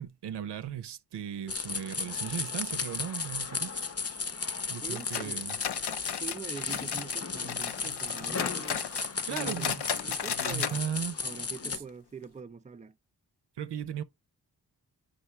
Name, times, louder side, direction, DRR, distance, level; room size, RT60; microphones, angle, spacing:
voice 1, 0.0-4.3 4.7-5.6 9.3-9.8 10.1-10.2 10.5-11.2 13.6-14.0, right 9 dB, 90° right, 0.7 m, -37 dB
sound 1, 1.5-11.8, left 5 dB, 35° left, 0.8 m, -35 dB
voice 2, 4.7-5.5 6.2-8.9 9.3-10.7 11.2-13.0, right 5 dB, 20° right, 0.5 m, -43 dB
sound 2, 4.9-7.2 7.5-10.8 11.1-11.2 11.6-11.7 12.2-12.3, left 8 dB, 80° left, 0.8 m, -35 dB
8.3 x 5.3 x 3.2 m
cardioid pair, 65°, 40 cm